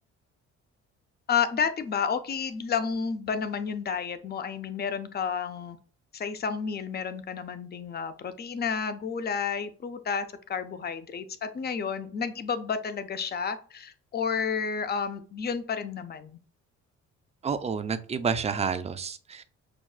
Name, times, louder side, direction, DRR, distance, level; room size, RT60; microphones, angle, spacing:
voice 1, 1.3-5.8 6.1-16.4, left 6 dB, 35° left, 10 dB, 0.5 m, -31 dB
voice 2, 17.4-19.4, right 6 dB, 20° right, 10 dB, 0.4 m, -29 dB
5.8 x 2.3 x 2.3 m, 0.42 s
cardioid pair, 90°, 30 cm